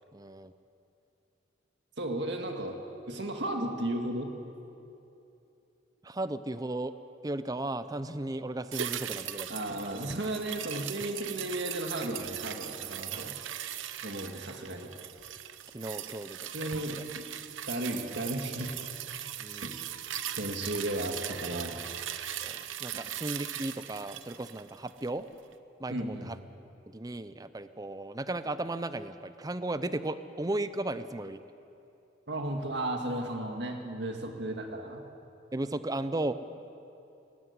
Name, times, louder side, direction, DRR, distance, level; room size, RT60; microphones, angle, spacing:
voice 1, 0.1-0.5 6.0-6.9 7.2-9.5 13.1-13.3 15.7-16.5 16.9-17.0 19.4-19.7 22.4-25.3 25.8-26.4 26.9-31.4 35.5-36.3, right 2 dB, 20° right, 12 dB, 0.6 m, -35 dB
voice 2, 2.0-2.8 3.1-4.3 9.5-13.4 14.0-14.9 16.5-17.2 17.7-18.9 19.6-19.7 20.4-21.8 25.9-26.3 32.3-35.0, right 1 dB, 60° right, 3 dB, 1.9 m, -34 dB
sound 1, 8.7-25.2 25.5-25.6, right 10 dB, 80° right, 0.8 m, -39 dB
18.5 x 15.0 x 9.7 m, 2.8 s
head